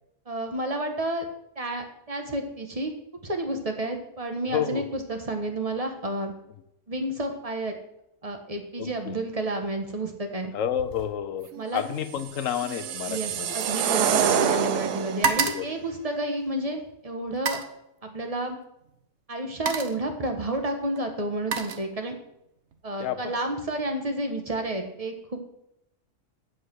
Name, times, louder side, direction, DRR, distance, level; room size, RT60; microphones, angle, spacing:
voice 1, 0.3-1.3 1.5-2.9 3.2-6.3 6.9-7.8 8.2-10.5 11.6-11.8 13.1-17.6 18.0-18.6 19.3-22.1 22.8-25.4, right 1 dB, 25° right, 5 dB, 1.4 m, -30 dB
voice 2, 4.5-4.8 8.8-9.2 10.5-13.5 14.2-14.3 15.2-15.7 23.0-23.4, left 9 dB, 60° left, 10 dB, 1.1 m, -30 dB
sound 1, 10.7-11.1 11.4-14.5 14.8-16.7 17.3-17.8 18.8-19.0 19.4-20.1 21.0-22.3 22.7-23.1, right 5 dB, 50° right, 1.1 m, -32 dB
sound 2, 12.2-15.4, right 8 dB, 80° right, 1.3 m, -26 dB
8.3 x 7.9 x 6.3 m, 0.81 s
omnidirectional pair, 1.7 m